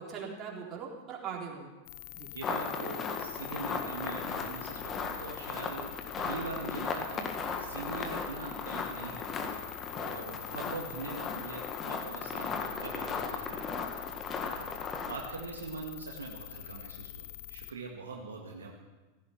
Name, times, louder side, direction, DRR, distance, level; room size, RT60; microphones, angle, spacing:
voice 1, 0.0-1.7 2.1-2.6, right 6 dB, 30° right, -2 dB, 3.9 m, -41 dB
sound 1, 1.9-17.7, left 16 dB, 50° left, 0.7 m, -45 dB
voice 2, 2.3-14.1 14.4-14.8 15.0-18.7, right 3 dB, 70° right, 0 dB, 1.9 m, -43 dB
sound 2, 2.4-15.3, left 5 dB, 25° left, 1.8 m, -37 dB
16.0 x 15.0 x 5.9 m, 1.2 s
figure-of-eight pair, 90°, 0 cm